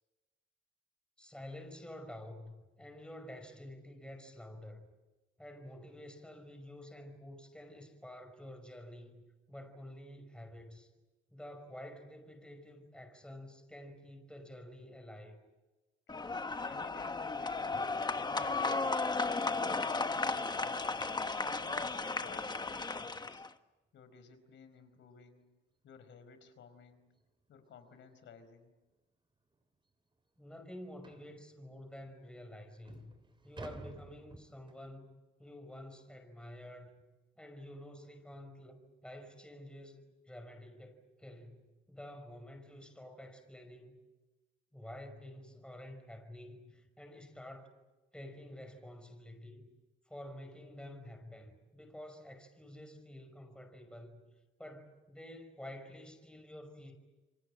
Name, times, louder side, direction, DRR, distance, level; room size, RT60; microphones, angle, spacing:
voice 1, 1.2-4.9 5.4-10.9 11.3-15.4 30.4-33.1 33.4-36.9 37.4-44.0 44.7-47.7 48.1-49.7 50.1-54.2 54.6-57.0, left 1 dB, 5° left, 5.7 m, -50 dB
sound 1, 16.1-23.5, left 3 dB, 20° left, 1.3 m, -35 dB
voice 2, 16.5-18.9 19.5-21.2 21.6-23.5 23.9-25.4 25.8-27.0 27.5-28.7, left 6 dB, 70° left, 4.6 m, -56 dB
sound 2, 18.3-21.4 24.2-24.3 24.8-25.0 25.4-25.5 25.9-26.0 27.1-27.3 27.7-27.8 28.5-28.6 28.9-29.0 29.5-29.6 31.0-31.3 32.1-32.2 32.6-34.9, right 3 dB, 25° right, 3.4 m, -54 dB
28.5 x 24.5 x 7.7 m
cardioid pair, 90°, 20 cm